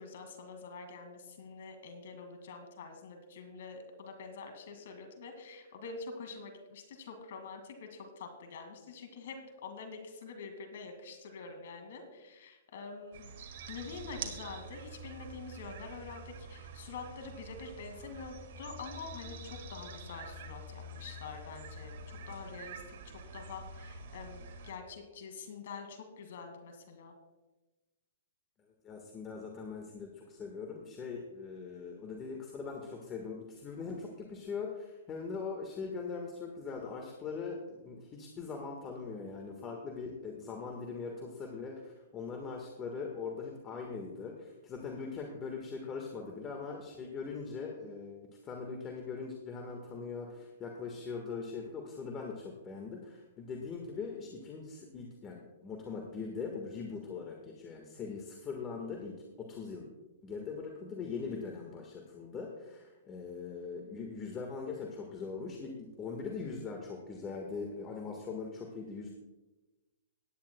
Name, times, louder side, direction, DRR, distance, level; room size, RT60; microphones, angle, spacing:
voice 1, 0.0-22.8 23.3-27.1, left 4 dB, 65° left, 5 dB, 2.0 m, -46 dB
sound 1, 13.1-24.7, right 3 dB, 60° right, 1.7 m, -47 dB
voice 2, 28.8-59.9 60.2-69.1, left 5 dB, 25° left, 1 dB, 1.4 m, -41 dB
18.0 x 10.5 x 2.2 m, 1.1 s
hypercardioid pair, 140°, 0 cm